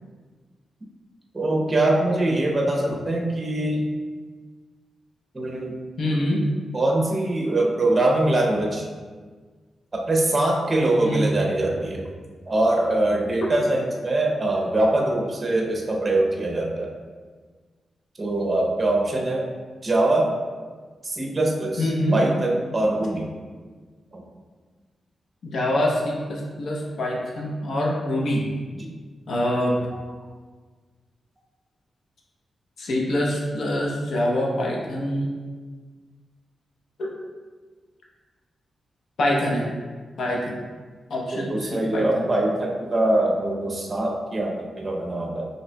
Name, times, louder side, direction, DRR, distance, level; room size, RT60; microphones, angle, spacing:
voice 1, 1.3-3.9 5.3-5.8 6.7-8.8 9.9-12.0 12.5-16.9 18.2-19.5 19.8-20.3 21.0-23.3 24.1-24.2 41.3-45.5, right 2 dB, 25° right, -1 dB, 0.6 m, -23 dB
voice 2, 6.0-6.4 11.0-11.2 21.8-22.2 25.4-28.4 29.3-29.8 32.8-35.3 37.0-37.1 39.2-39.6 40.2-40.6 41.1-42.2, left 1 dB, 70° left, -3 dB, 0.7 m, -25 dB
5.3 x 3.0 x 2.2 m, 1.5 s
wide cardioid pair, 145°, 0 cm